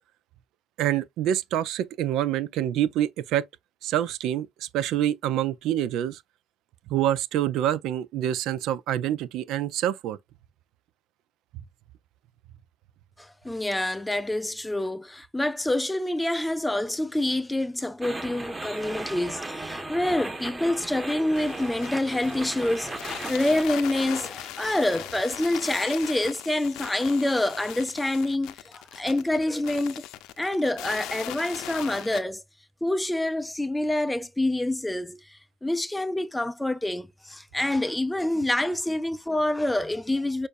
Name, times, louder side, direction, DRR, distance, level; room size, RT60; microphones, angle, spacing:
voice 1, 0.8-3.4 3.8-6.2 6.9-10.2, right 11 dB, 65° right, 0.6 m, -26 dB
voice 2, 13.2-30.0 30.4-32.4 32.8-40.5, left 1 dB, 10° left, 0.5 m, -27 dB
sound 1, 18.0-23.7, right 2 dB, 15° right, 1.2 m, -36 dB
sound 2, 21.3-32.2, left 13 dB, 70° left, 0.7 m, -39 dB
6.3 x 2.7 x 2.5 m
supercardioid pair, 75°, 0 cm